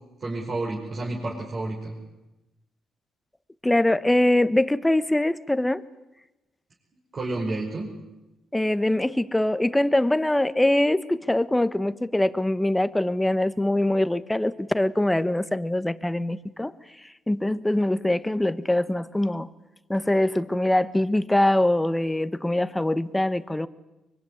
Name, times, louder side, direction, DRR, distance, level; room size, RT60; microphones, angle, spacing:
voice 1, 0.2-2.0 7.1-7.9, right 2 dB, 40° right, -3 dB, 5.3 m, -30 dB
voice 2, 3.6-5.8 8.5-16.7 17.3-19.5 19.9-23.7, left 1 dB, 10° left, 14 dB, 1.1 m, -23 dB
24.0 x 23.0 x 9.6 m, 1.0 s
cardioid pair, 90°, 0 cm